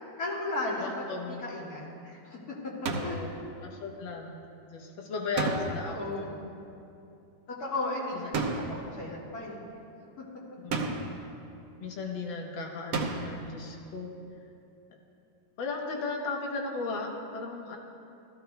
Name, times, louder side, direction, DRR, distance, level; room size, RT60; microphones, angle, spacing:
voice 1, 0.2-2.6 3.0-3.2 5.9-6.3 7.6-9.6, left 2 dB, 55° left, -5 dB, 2.4 m, -35 dB
voice 2, 0.8-1.4 2.9-3.3 3.6-4.4 4.7-6.3 10.6-11.0 11.8-14.1 15.6-17.8, left 3 dB, 80° left, 1 dB, 1.8 m, -36 dB
sound 1, 2.8-3.3 5.4-6.0 8.3-8.9 10.7-11.3 12.9-13.5, right 3 dB, 65° right, 1.4 m, -31 dB
14.5 x 14.0 x 2.3 m, 2.6 s
omnidirectional pair, 2.1 m